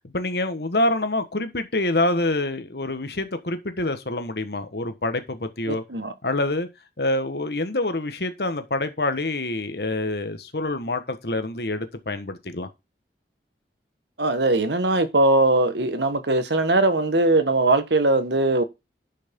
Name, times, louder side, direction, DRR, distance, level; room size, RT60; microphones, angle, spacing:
voice 1, 0.1-5.8 6.2-6.7 7.0-12.7, left 2 dB, 65° left, 1.4 m, -26 dB
voice 2, 5.7-6.1 14.2-18.6, right 2 dB, 85° right, 1.5 m, -20 dB
10.5 x 6.4 x 3.7 m
head